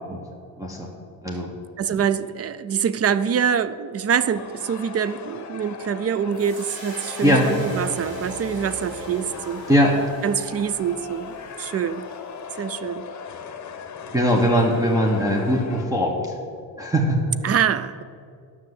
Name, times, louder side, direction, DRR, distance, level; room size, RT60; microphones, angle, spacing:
voice 1, 0.6-0.9 1.2-1.5 7.2-7.5 9.7-10.0 14.1-16.3 16.8-17.3, equal, 10° right, -1 dB, 1.3 m, -20 dB
voice 2, 1.8-9.6 10.2-12.1 12.6-13.1 17.4-18.0, right 8 dB, 40° right, 15 dB, 0.5 m, -25 dB
sound 1, 4.2-15.9, left 6 dB, 45° left, 1.1 m, -39 dB
sound 2, 6.3-12.7, right 1 dB, 80° right, 3.3 m, -39 dB
10.5 x 6.4 x 8.0 m, 2.3 s
cardioid pair, 105°, 39 cm